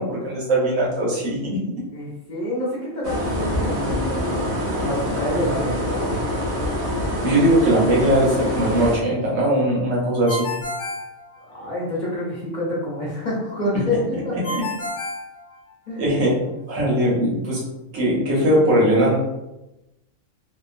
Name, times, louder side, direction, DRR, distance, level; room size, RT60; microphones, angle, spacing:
voice 1, 0.0-1.6 7.2-10.5 14.3-14.6 16.0-16.4 16.7-17.6 17.9-19.2, right 1 dB, 85° right, -4 dB, 1.2 m, -20 dB
voice 2, 1.9-4.4 4.7-6.0 11.5-14.6 15.9-16.0, left 1 dB, 45° left, -6 dB, 0.8 m, -27 dB
sound 1, 3.0-9.0, equal, 65° right, 0.9 m, -25 dB
Ringtone, 10.3-11.9 14.4-16.1, left 2 dB, 80° left, 1.1 m, -31 dB
2.8 x 2.2 x 2.4 m, 0.96 s
omnidirectional pair, 1.3 m